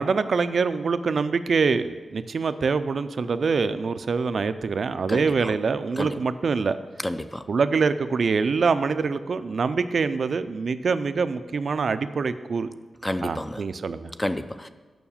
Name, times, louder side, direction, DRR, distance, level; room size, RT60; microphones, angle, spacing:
voice 1, 0.0-6.8 7.5-12.7 13.2-14.1, right 5 dB, 60° right, 11 dB, 0.4 m, -25 dB
voice 2, 5.1-5.5 6.0-6.1 7.0-7.4 13.0-13.6 14.2-14.7, left 1 dB, 10° left, 10 dB, 0.4 m, -30 dB
7.1 x 5.9 x 7.1 m, 1.3 s
wide cardioid pair, 125°, 0 cm